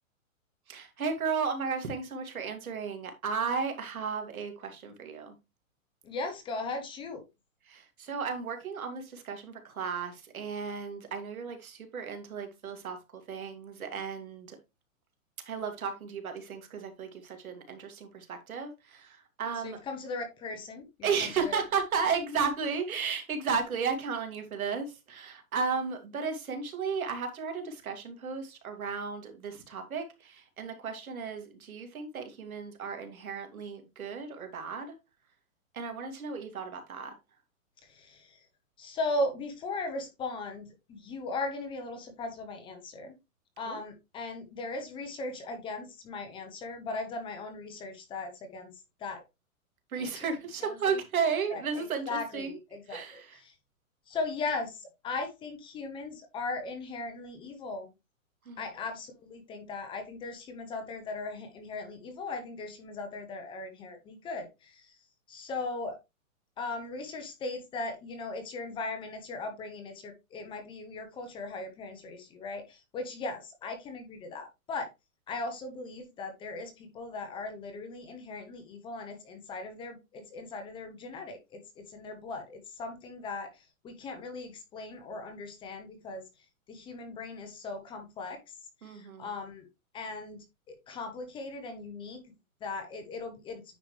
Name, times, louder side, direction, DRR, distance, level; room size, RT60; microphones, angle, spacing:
voice 1, 0.7-5.3 7.7-14.6 15.4-19.8 21.0-35.0 35.7-37.1 43.7-43.8 49.9-52.6 52.9-53.4 58.4-58.6 88.8-89.3, right 5 dB, 80° right, 2.5 m, -34 dB
voice 2, 6.0-7.2 19.6-20.9 21.2-21.6 37.8-38.5 38.8-43.1 43.6-49.2 50.0-50.1 50.9-51.0 51.5-53.5 54.1-57.9 58.6-65.0 65.3-66.0 66.6-74.9 75.3-86.2 86.7-88.4 88.8-89.7 89.9-92.2 92.6-93.6, left 3 dB, 10° left, 0.8 m, -38 dB
9.3 x 5.0 x 3.2 m
hypercardioid pair, 155°, 41 cm